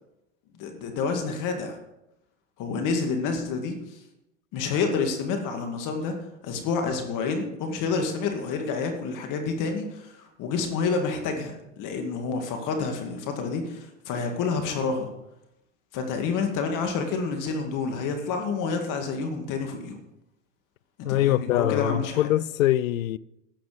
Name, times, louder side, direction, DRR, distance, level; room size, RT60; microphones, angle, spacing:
voice 1, 0.6-1.8 2.6-4.0 4.5-6.2 6.4-15.1 15.9-20.0 21.0-22.3, left 4 dB, 50° left, 2.3 m, -28 dB
voice 2, 21.0-23.2, left 14 dB, 80° left, 0.6 m, -23 dB
13.0 x 9.4 x 5.1 m
hypercardioid pair, 85°, 39 cm